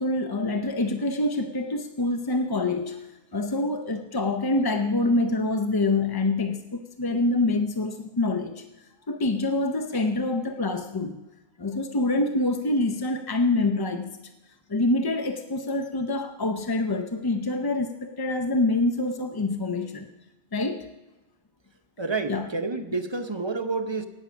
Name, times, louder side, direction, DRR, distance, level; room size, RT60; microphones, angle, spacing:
voice 1, 0.0-3.1 3.3-8.6 9.1-11.2 11.6-14.2 14.7-20.1 20.5-20.9 22.3-22.5, left 2 dB, 30° left, 6 dB, 0.5 m, -26 dB
voice 2, 22.0-24.1, right 3 dB, 30° right, 7 dB, 0.7 m, -29 dB
18.0 x 7.0 x 6.2 m, 1.1 s
omnidirectional pair, 1.1 m